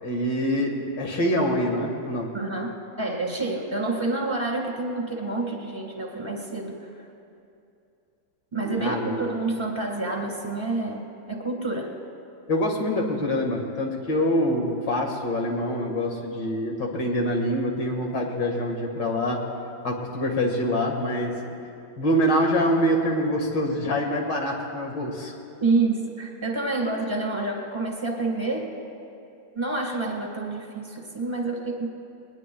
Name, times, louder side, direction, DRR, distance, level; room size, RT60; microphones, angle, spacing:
voice 1, 0.0-2.3 8.6-9.3 12.5-19.4 19.8-21.3 22.0-25.3, equal, 85° left, 1 dB, 2.4 m, -25 dB
voice 2, 2.3-2.7 3.0-6.9 8.5-11.9 25.6-28.7 29.5-31.9, right 3 dB, 15° right, 1 dB, 1.5 m, -28 dB
20.5 x 20.0 x 2.3 m, 2.6 s
omnidirectional pair, 1.9 m